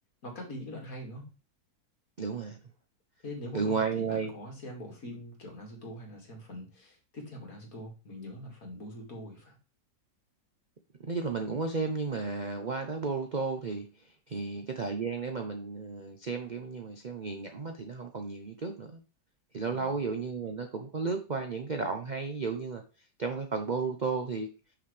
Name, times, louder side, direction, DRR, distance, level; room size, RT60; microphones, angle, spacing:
voice 1, 0.2-1.3 3.2-9.6 14.3-14.4 19.7-19.9, left 1 dB, 50° left, 1 dB, 2.5 m, -43 dB
voice 2, 2.2-2.6 3.5-4.3 11.0-19.0 19.5-24.5, right 4 dB, 60° right, 5 dB, 0.4 m, -33 dB
6.9 x 6.1 x 3.3 m, 0.32 s
omnidirectional pair, 2.0 m